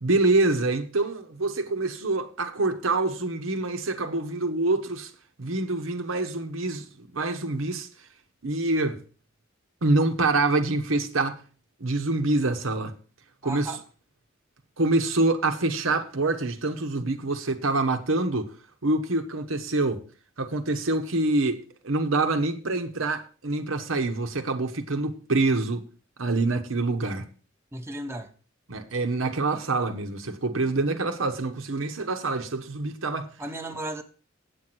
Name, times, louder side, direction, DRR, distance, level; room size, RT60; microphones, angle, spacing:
voice 1, 0.0-5.1 5.4-7.9 8.4-9.0 9.8-11.4 11.8-12.9 13.4-13.7 14.8-18.5 18.8-20.0 20.4-21.6 21.8-25.9 26.2-27.3 28.7-33.3, right 2 dB, 85° right, 1.1 m, -26 dB
voice 2, 13.4-13.8 27.7-28.3 33.4-34.0, right 1 dB, 15° right, 1.0 m, -34 dB
8.5 x 7.9 x 6.0 m
head